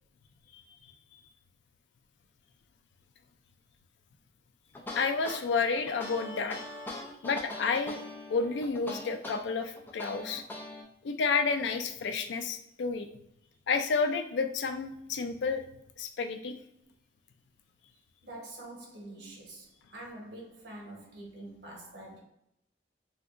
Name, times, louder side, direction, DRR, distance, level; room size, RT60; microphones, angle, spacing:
sound 1, 4.7-10.8, left 1 dB, 10° left, 0.5 m, -41 dB
voice 1, 4.9-6.7 7.2-8.0 8.3-10.4 11.0-13.1 13.7-15.6 16.0-16.6, left 4 dB, 80° left, 0.4 m, -30 dB
voice 2, 18.2-22.2, right 1 dB, 90° right, 1.0 m, -46 dB
3.4 x 2.8 x 2.4 m
head